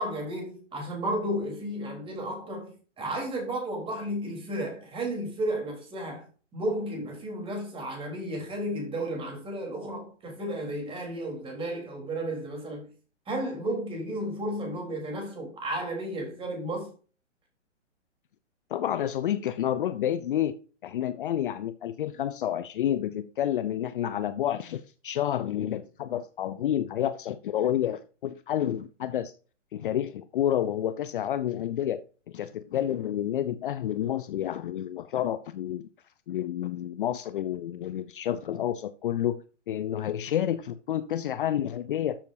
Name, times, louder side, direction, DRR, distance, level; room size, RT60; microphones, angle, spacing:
voice 1, 0.0-2.7 3.0-6.2 6.5-12.9 13.3-16.9, right 1 dB, 15° right, 3.8 m, -33 dB
voice 2, 18.7-20.5 20.8-29.3 29.7-32.0 32.3-35.9 36.3-42.2, left 11 dB, 45° left, 0.7 m, -29 dB
13.0 x 7.3 x 2.7 m
figure-of-eight pair, 125°, 38 cm